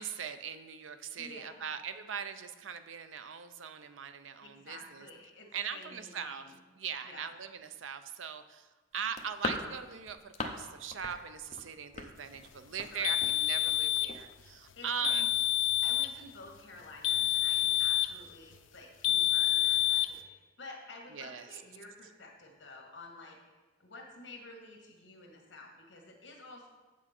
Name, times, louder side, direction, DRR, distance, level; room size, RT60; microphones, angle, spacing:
voice 1, 0.0-5.1 5.5-6.5 6.8-15.3 21.1-21.6, right 7 dB, 90° right, 10 dB, 0.6 m, -40 dB
voice 2, 1.2-1.7 4.4-6.6 7.0-7.3 12.9-13.2 14.7-15.1 15.8-26.7, left 2 dB, 65° left, 2 dB, 1.6 m, -50 dB
sound 1, 9.0-10.7 10.9-11.2 11.5-12.9 13.2-13.4 13.7-13.8 14.1-14.2, left 3 dB, 35° left, 0.7 m, -39 dB
sound 2, 13.0-14.2 15.0-16.2 17.0-18.2 19.0-20.2, left 15 dB, 90° left, 0.5 m, -28 dB
7.7 x 7.3 x 4.3 m, 1.2 s
head